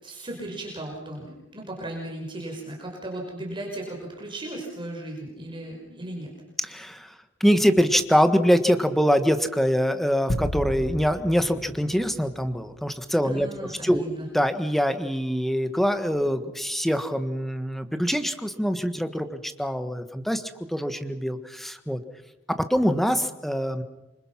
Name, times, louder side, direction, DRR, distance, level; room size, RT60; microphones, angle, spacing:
voice 1, 0.0-6.3 13.3-14.3, right 1 dB, 25° right, -1 dB, 5.3 m, -36 dB
voice 2, 6.6-7.1 7.4-14.0 14.3-20.4 20.7-22.0 22.5-23.8, equal, ahead, 9 dB, 1.5 m, -24 dB
sound 1, 10.3-12.9, equal, 40° left, 1.4 m, -33 dB
27.0 x 24.5 x 6.0 m, 0.99 s
head